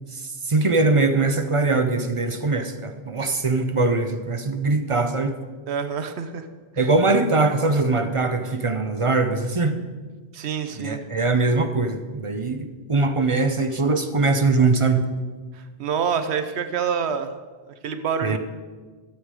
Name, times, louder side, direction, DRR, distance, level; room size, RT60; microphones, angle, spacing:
voice 1, 0.1-5.3 6.8-9.8 10.8-15.1 18.2-18.4, right 3 dB, 35° right, 7 dB, 0.7 m, -22 dB
voice 2, 5.7-6.5 10.3-11.0 15.5-17.3 17.8-18.4, right 7 dB, 85° right, 9 dB, 1.0 m, -27 dB
13.5 x 7.9 x 4.9 m, 1.4 s
omnidirectional pair, 1.1 m